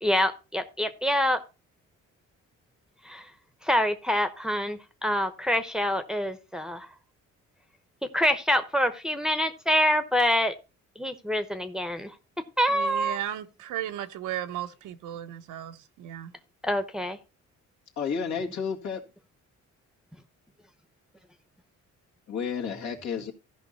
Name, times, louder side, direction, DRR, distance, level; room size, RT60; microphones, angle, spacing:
voice 1, 0.0-1.4 3.0-3.3 3.6-6.9 8.1-10.5 11.0-12.1 12.6-13.2 16.6-17.2, equal, ahead, 0.9 m, -26 dB
voice 2, 12.7-16.3, right 12 dB, 90° right, 0.9 m, -35 dB
voice 3, 18.0-19.0 22.3-23.3, left 6 dB, 65° left, 2.0 m, -31 dB
13.5 x 5.3 x 4.1 m
cardioid pair, 90°, 30 cm